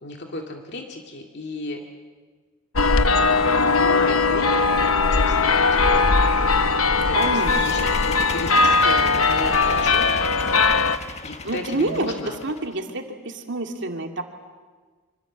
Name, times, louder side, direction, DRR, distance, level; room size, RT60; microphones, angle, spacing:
voice 1, 0.0-1.8 3.2-4.7 5.1-6.1 6.9-7.8 8.1-10.4 11.2-12.4, left 2 dB, 55° left, 2 dB, 2.1 m, -34 dB
sound 1, 2.8-11.0, left 4 dB, 80° left, 1.1 m, -19 dB
voice 2, 7.1-7.9 11.4-12.1 12.4-14.2, right 2 dB, 60° right, 3 dB, 2.5 m, -28 dB
sound 2, 7.2-12.7, left 4 dB, 30° left, 1.3 m, -35 dB
26.0 x 25.5 x 7.4 m, 1.4 s
head